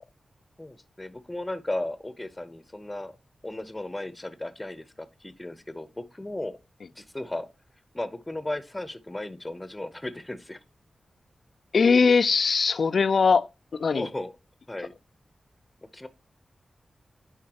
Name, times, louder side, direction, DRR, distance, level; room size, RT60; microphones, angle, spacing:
voice 1, 0.6-3.2 3.4-6.5 7.0-7.5 7.9-10.6 13.9-14.3 14.7-14.9 15.9-16.1, left 1 dB, 15° left, 0.7 m, -35 dB
voice 2, 11.7-13.5 13.7-14.1, left 5 dB, 70° left, 0.4 m, -20 dB
10.0 x 4.1 x 2.9 m
wide cardioid pair, 110°, 0 cm